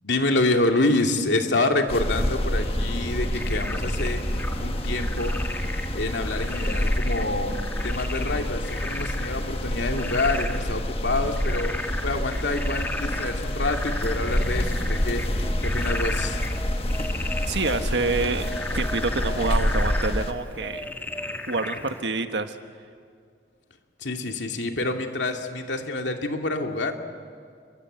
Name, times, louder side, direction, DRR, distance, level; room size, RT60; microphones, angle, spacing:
voice 1, 0.0-5.4 5.9-16.4 24.0-27.0, left 2 dB, 85° left, 3 dB, 2.5 m, -27 dB
sound 1, 1.9-20.3, left 1 dB, 30° left, 1.4 m, -28 dB
sound 2, 2.1-8.0, equal, 15° right, 1.9 m, -32 dB
Frog, 3.3-22.0, left 1 dB, 10° left, 1.6 m, -36 dB
voice 2, 17.5-20.9 21.5-22.6, right 3 dB, 80° right, 8 dB, 1.5 m, -27 dB
28.5 x 23.0 x 8.1 m, 2.1 s
head